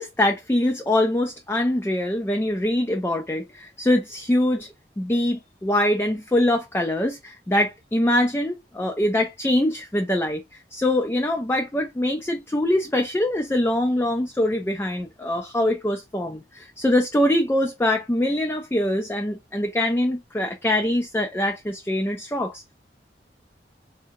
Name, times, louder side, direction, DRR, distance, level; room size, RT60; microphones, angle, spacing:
voice 1, 0.0-4.7 5.0-22.6, left 1 dB, 15° left, 0.4 m, -23 dB
3.6 x 2.7 x 2.6 m
head